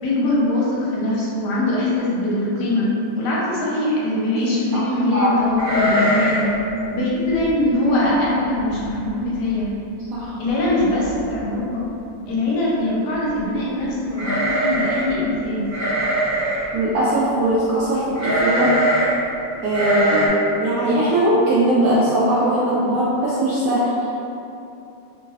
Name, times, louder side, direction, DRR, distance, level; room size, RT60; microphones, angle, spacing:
voice 1, 0.0-2.9 3.2-6.4 6.9-9.7 10.4-11.8 12.3-15.7, left 1 dB, 70° left, -6 dB, 1.2 m, -22 dB
voice 2, 4.7-5.4 10.1-10.4 16.7-18.7 19.6-23.9, right 1 dB, 75° right, -9 dB, 0.8 m, -20 dB
sound 1, 5.6-6.5 6.8-6.9 7.4-7.6 8.2-8.3 8.6-9.1 9.4-9.5 10.6-10.7 11.0-11.5 14.1-15.1 15.7-16.7 18.2-19.1 19.7-20.3, right 1 dB, 40° right, 1.1 m, -21 dB
3.1 x 2.2 x 3.3 m, 2.7 s
omnidirectional pair, 2.0 m